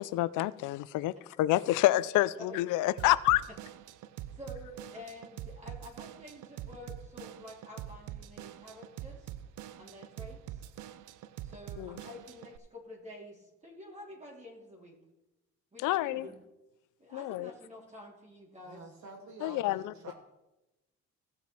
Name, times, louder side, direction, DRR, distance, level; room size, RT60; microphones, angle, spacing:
voice 1, 0.0-3.4 11.8-12.0 15.8-16.3 17.1-17.5 19.4-19.9, left 16 dB, 85° left, 18 dB, 0.5 m, -28 dB
Drum kit / Drum, 3.0-12.6, right 12 dB, 85° right, 0.5 m, -45 dB
voice 2, 4.4-9.3 9.8-10.7 11.4-15.0 15.7-16.4 17.0-18.8, left 1 dB, 25° right, -2 dB, 2.9 m, -49 dB
voice 3, 18.6-20.1, right 3 dB, 70° right, 0 dB, 2.7 m, -48 dB
15.5 x 5.9 x 4.4 m, 0.97 s
cardioid pair, 90°, 30 cm